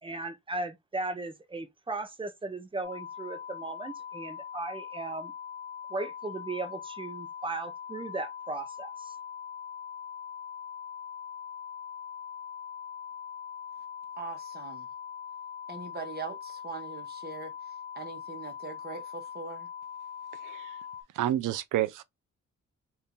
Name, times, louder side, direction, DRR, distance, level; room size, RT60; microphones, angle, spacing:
voice 1, 0.0-5.3 5.9-9.1, right 3 dB, 15° right, 0.7 m, -37 dB
sound 1, 2.8-21.0, left 8 dB, 20° left, 0.7 m, -42 dB
voice 2, 14.2-14.9 15.7-17.5 17.9-19.7, right 4 dB, 30° right, 1.2 m, -41 dB
voice 3, 20.4-20.8 21.1-22.0, right 13 dB, 85° right, 0.6 m, -29 dB
2.7 x 2.7 x 3.7 m
cardioid pair, 105°, 31 cm